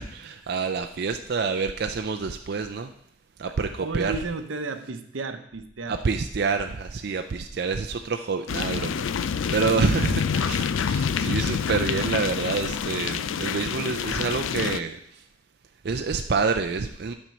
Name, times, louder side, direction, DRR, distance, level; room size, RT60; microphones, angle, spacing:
voice 1, 0.0-2.9 3.4-4.1 5.9-15.2 15.8-17.1, right 4 dB, 55° right, 6 dB, 0.4 m, -27 dB
voice 2, 3.5-6.0 10.3-11.4, right 3 dB, 85° right, 9 dB, 0.8 m, -35 dB
sound 1, 8.5-14.8, left 6 dB, 90° left, 0.4 m, -27 dB
9.2 x 4.4 x 7.0 m, 0.71 s
head